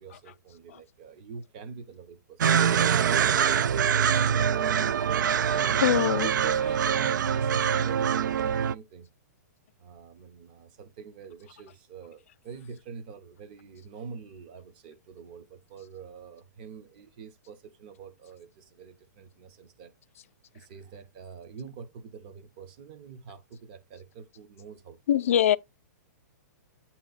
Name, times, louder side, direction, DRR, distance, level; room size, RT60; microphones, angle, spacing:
voice 1, 0.0-4.9 6.2-9.1 9.8-19.9 20.5-25.3, right 6 dB, 30° right, 0.7 m, -45 dB
sound 1, 2.4-8.7, right 8 dB, 85° right, 0.4 m, -24 dB
voice 2, 5.5-6.3 25.1-25.6, left 11 dB, 45° left, 0.3 m, -23 dB
8.4 x 2.9 x 3.9 m
hypercardioid pair, 175°, 10 cm